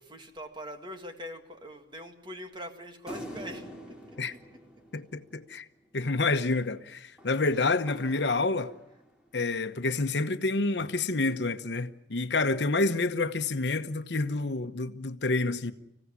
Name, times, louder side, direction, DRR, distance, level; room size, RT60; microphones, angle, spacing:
voice 1, 0.0-4.2, equal, 25° right, 2.1 m, -43 dB
sound 1, 3.1-5.7 7.2-9.3, equal, 5° right, 3.8 m, -46 dB
voice 2, 4.9-5.7 5.9-8.7 9.3-15.7, left 3 dB, 70° left, 1.0 m, -28 dB
26.0 x 16.0 x 9.7 m
head